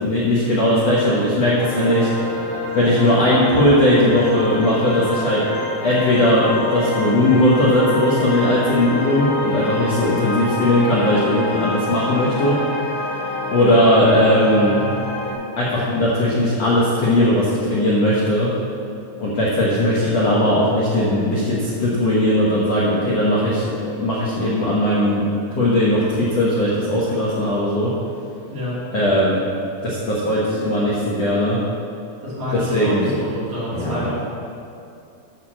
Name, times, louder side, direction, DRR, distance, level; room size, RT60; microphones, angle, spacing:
voice 1, 0.0-2.1 2.7-5.4 5.8-12.6 13.5-14.8 15.6-18.5 19.2-27.9 28.9-29.4 29.8-31.6 32.5-33.3 33.7-34.1, left 1 dB, 85° left, -7 dB, 1.4 m, -18 dB
sound 1, 1.6-15.3, left 2 dB, 55° left, 3.8 m, -27 dB
voice 2, 28.5-28.8 32.2-34.1, left 1 dB, 45° right, -10 dB, 4.0 m, -28 dB
12.0 x 4.8 x 7.3 m, 2.6 s
omnidirectional pair, 5.2 m